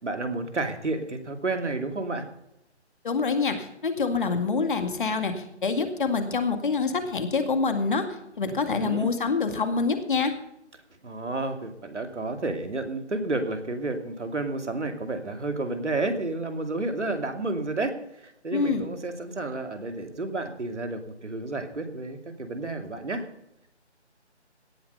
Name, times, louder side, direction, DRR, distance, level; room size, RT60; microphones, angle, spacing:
voice 1, 0.0-2.2 8.5-9.1 11.0-17.9 18.2-23.2, right 2 dB, 80° right, 6 dB, 2.7 m, -31 dB
voice 2, 3.0-8.1 8.4-10.3 18.5-18.9, left 4 dB, 45° left, 7 dB, 2.2 m, -26 dB
17.0 x 8.0 x 5.4 m, 0.82 s
figure-of-eight pair, 160°, 35 cm